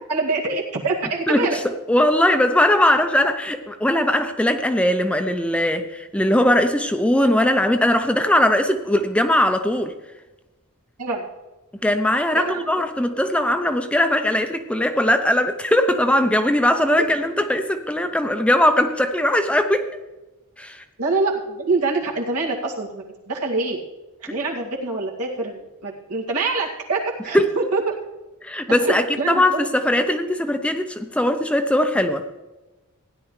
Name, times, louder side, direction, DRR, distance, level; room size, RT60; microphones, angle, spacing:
voice 1, 0.1-1.6 11.0-11.3 12.3-12.6 21.0-23.8 24.3-27.9 28.9-29.7 30.0-30.1, right 3 dB, 85° right, -2 dB, 2.1 m, -25 dB
voice 2, 1.3-9.9 11.8-19.9 20.6-20.8 27.3-27.5 28.4-32.2, left 1 dB, 5° left, 7 dB, 0.5 m, -20 dB
16.5 x 10.0 x 3.2 m, 1.1 s
head